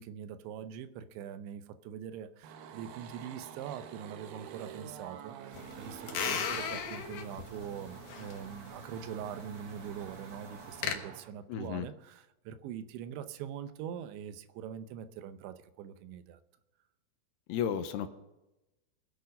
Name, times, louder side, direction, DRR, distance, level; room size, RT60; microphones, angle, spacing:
voice 1, 0.0-16.4, right 8 dB, 90° right, 10 dB, 3.2 m, -43 dB
sound 1, 2.4-11.3, right 9 dB, 70° right, 2.6 m, -48 dB
sound 2, 5.5-10.9, left 7 dB, 60° left, 2.1 m, -38 dB
voice 2, 11.5-11.9 17.5-18.1, left 8 dB, 75° left, 9 dB, 2.8 m, -33 dB
22.0 x 8.2 x 5.3 m, 0.96 s
omnidirectional pair, 5.1 m